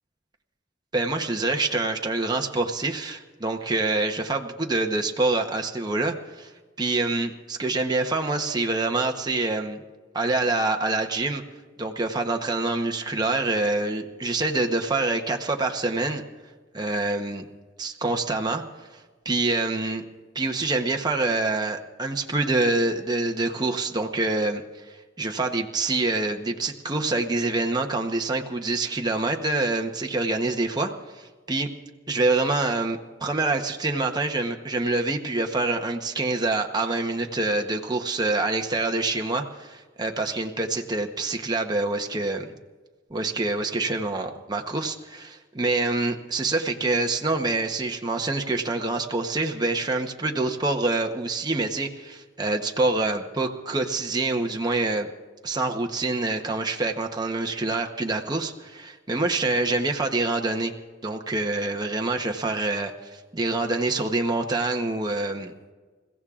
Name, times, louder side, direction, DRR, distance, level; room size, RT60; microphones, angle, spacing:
voice 1, 0.9-6.5 6.8-9.8 10.1-11.4 11.8-16.2 16.7-17.4 17.8-18.6 19.2-20.0 20.3-31.7 32.1-42.5 43.1-55.1 55.4-60.7 61.0-65.5, right 2 dB, 20° right, 3 dB, 0.9 m, -26 dB
28.5 x 16.0 x 2.5 m, 1.3 s
head